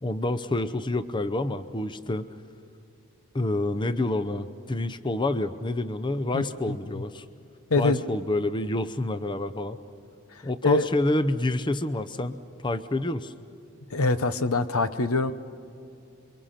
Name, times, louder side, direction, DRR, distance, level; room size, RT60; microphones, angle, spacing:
voice 1, 0.0-2.3 3.3-7.2 7.8-9.8 10.4-13.3, left 1 dB, 20° left, 11 dB, 0.7 m, -28 dB
voice 2, 6.3-7.0 7.7-8.0 10.3-10.9 13.9-15.3, left 3 dB, 80° left, 12 dB, 1.0 m, -25 dB
29.5 x 23.5 x 5.8 m, 2.7 s
head